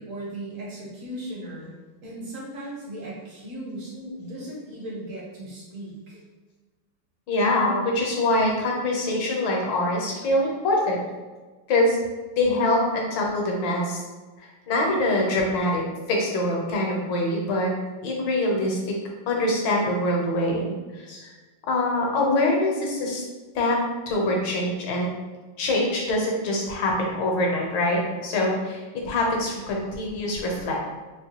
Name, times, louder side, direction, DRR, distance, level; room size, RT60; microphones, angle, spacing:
voice 1, 0.0-1.7 2.0-6.2, right 1 dB, 50° right, -5 dB, 1.1 m, -37 dB
voice 2, 7.3-11.0 11.7-12.0 12.4-14.0 14.4-17.7 18.0-18.9 19.3-21.3 21.7-23.2 23.5-23.8 24.1-25.1 25.6-30.8, left 1 dB, 70° left, -1 dB, 1.4 m, -24 dB
4.5 x 2.2 x 2.9 m, 1.3 s
omnidirectional pair, 2.3 m